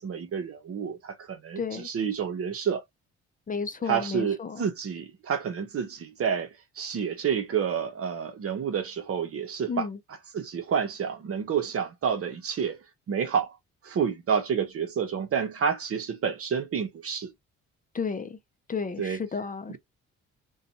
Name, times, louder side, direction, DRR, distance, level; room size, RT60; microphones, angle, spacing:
voice 1, 0.0-2.8 3.8-6.5 6.8-9.9 10.3-12.8 13.1-13.5 13.8-17.3 19.0-19.2, right 7 dB, 50° right, 0.8 m, -29 dB
voice 2, 1.6-1.9 3.5-4.6 9.7-10.0 17.9-18.4 18.7-19.8, left 5 dB, 30° left, 0.5 m, -32 dB
2.5 x 2.3 x 2.7 m
cardioid pair, 75°, 30 cm